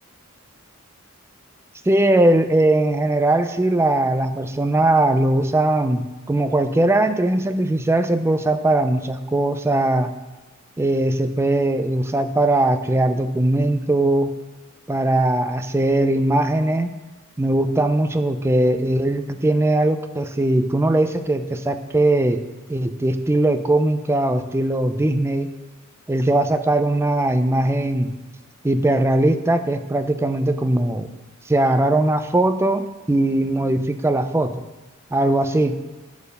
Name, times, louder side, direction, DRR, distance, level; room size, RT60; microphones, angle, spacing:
voice 1, 1.9-10.1 10.8-14.3 14.9-16.9 17.4-22.4 22.7-25.5 26.1-28.1 28.6-31.1 31.5-34.5 35.1-35.7, right 1 dB, 10° right, 9 dB, 0.4 m, -20 dB
7.2 x 4.4 x 6.5 m, 1.2 s
head